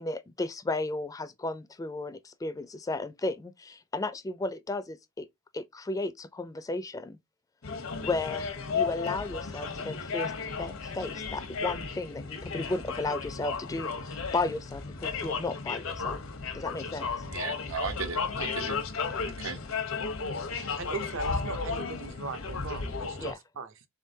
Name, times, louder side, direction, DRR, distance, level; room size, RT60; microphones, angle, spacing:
voice 1, 0.0-5.3 5.5-7.2 8.0-10.3 10.6-16.2 16.5-17.2 23.2-23.4, left 2 dB, 15° left, 0.4 m, -34 dB
sound 1, 7.6-23.3, left 5 dB, 85° left, 0.9 m, -34 dB
voice 2, 16.9-18.8 19.3-19.6, right 4 dB, 90° right, 1.0 m, -36 dB
voice 3, 20.8-23.7, right 4 dB, 65° right, 0.7 m, -39 dB
3.9 x 3.5 x 2.7 m
head